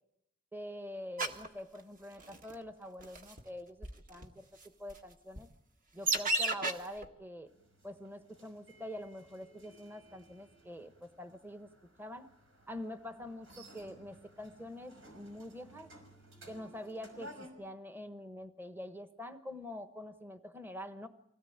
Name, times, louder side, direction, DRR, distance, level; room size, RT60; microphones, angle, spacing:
voice 1, 0.5-4.5 4.8-5.5 5.9-7.5 7.8-11.7 12.0-12.3 12.7-15.9 16.5-21.1, left 1 dB, 10° right, 9 dB, 1.1 m, -45 dB
sound 1, 1.2-1.5 2.2-2.5 3.0-3.4 3.8-3.9 4.2-4.3 4.9-5.0 5.4-5.5 6.1-6.7 7.0-7.1, right 2 dB, 45° right, 1.8 m, -31 dB
sound 2, 7.5-17.5, equal, 80° right, 5.7 m, -56 dB
25.0 x 17.5 x 8.7 m, 0.85 s
head